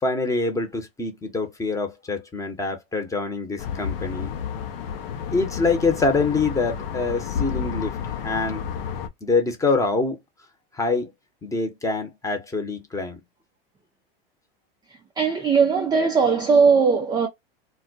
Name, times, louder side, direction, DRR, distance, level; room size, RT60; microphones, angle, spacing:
voice 1, 0.0-4.3 5.3-7.9 8.2-8.6 9.2-10.2 10.7-11.1 11.4-13.2, left 3 dB, 10° left, 0.9 m, -25 dB
sound 1, 3.6-9.1, left 7 dB, 70° left, 0.7 m, -31 dB
voice 2, 15.2-17.3, right 5 dB, 15° right, 0.4 m, -19 dB
2.3 x 2.1 x 3.8 m
hypercardioid pair, 115°, 30 cm